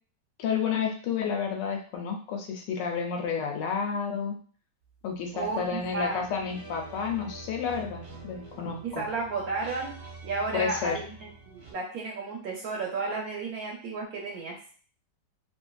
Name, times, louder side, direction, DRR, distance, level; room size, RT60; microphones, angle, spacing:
voice 1, 0.4-4.4 5.0-9.0 10.5-11.0, left 6 dB, 80° left, 2 dB, 1.2 m, -31 dB
sound 1, 5.3-11.7, right 3 dB, 45° right, 0.6 m, -46 dB
voice 2, 5.3-6.2 8.8-10.0 10.2-14.6, right 3 dB, 70° right, 0 dB, 0.9 m, -33 dB
3.1 x 2.5 x 2.3 m, 0.43 s
omnidirectional pair, 1.9 m